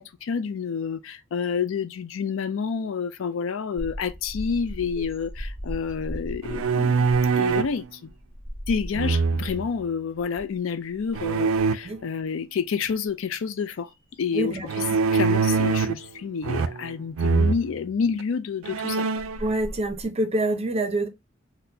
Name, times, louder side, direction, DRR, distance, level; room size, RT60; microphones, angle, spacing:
voice 1, 0.0-7.1 7.3-8.1 8.7-13.9 14.2-14.6 15.1-19.1, left 6 dB, 70° left, 0.4 m, -29 dB
sound 1, 3.8-9.8 10.2-10.6 10.9-11.9 12.5-14.8 15.2-15.4 16.5-16.6 18.7-18.8 19.2-20.1, equal, 45° left, 1.7 m, -38 dB
sound 2, 6.4-7.8 8.9-9.7 11.1-11.8 14.7-16.1 16.4-16.9 17.2-17.6 18.2-18.3 18.6-19.4, right 5 dB, 85° right, 0.4 m, -23 dB
voice 2, 14.3-14.7 19.4-21.1, right 1 dB, 30° right, 0.5 m, -26 dB
4.2 x 2.1 x 2.6 m
head